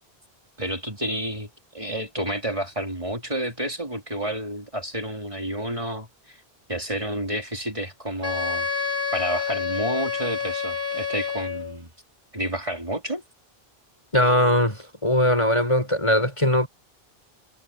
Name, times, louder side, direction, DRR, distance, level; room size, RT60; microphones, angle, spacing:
voice 1, 0.6-1.5 1.7-6.4 6.7-8.7 9.1-11.9 12.3-13.2, equal, 30° right, 3.7 m, -30 dB
Wind instrument woodwind instrument, 8.2-11.8, left 6 dB, 55° right, 3.5 m, -28 dB
voice 2, 14.1-16.7, equal, 30° left, 5.6 m, -20 dB
omnidirectional pair, 1.0 m